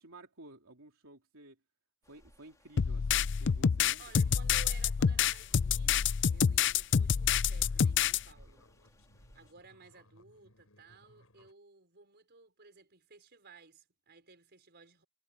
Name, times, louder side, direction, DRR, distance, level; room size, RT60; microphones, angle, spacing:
voice 1, 0.0-1.6 2.1-4.0, right 2 dB, 80° right, 3.2 m, -54 dB
sound 1, 2.0-9.5, equal, 15° left, 3.5 m, -55 dB
sound 2, 2.8-8.2, left 7 dB, 60° left, 0.5 m, -27 dB
sound 3, 3.8-11.5, left 1 dB, 80° left, 7.2 m, -65 dB
voice 2, 4.0-8.7 9.3-15.0, right 4 dB, 50° right, 5.2 m, -57 dB
head